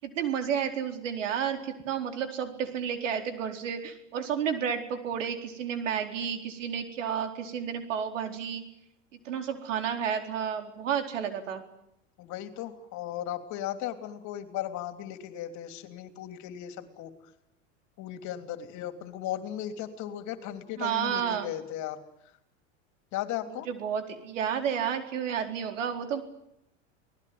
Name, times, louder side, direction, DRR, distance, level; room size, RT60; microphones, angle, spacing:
voice 1, 0.0-8.6 9.2-11.6 20.8-21.5 23.7-26.2, right 8 dB, 80° right, 6 dB, 4.4 m, -31 dB
voice 2, 12.2-17.1 18.0-22.0 23.1-23.7, left 11 dB, 50° left, 8 dB, 3.3 m, -36 dB
29.5 x 19.5 x 9.5 m, 0.80 s
hypercardioid pair, 105°, 37 cm